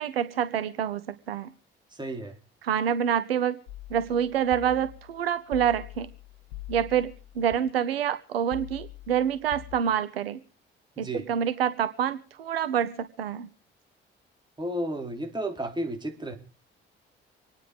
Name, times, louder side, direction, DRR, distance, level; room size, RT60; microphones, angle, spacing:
voice 1, 0.0-1.5 2.6-3.6 3.9-6.1 6.7-10.4 11.0-13.5, right 9 dB, 80° right, 13 dB, 0.7 m, -27 dB
voice 2, 1.9-2.4 11.0-11.2 14.6-16.3, right 1 dB, 15° right, 2 dB, 4.2 m, -32 dB
sound 1, 3.7-7.6 8.5-9.8, left 15 dB, 70° left, 1.3 m, -44 dB
25.5 x 9.7 x 5.1 m, 0.37 s
figure-of-eight pair, 45°, 29 cm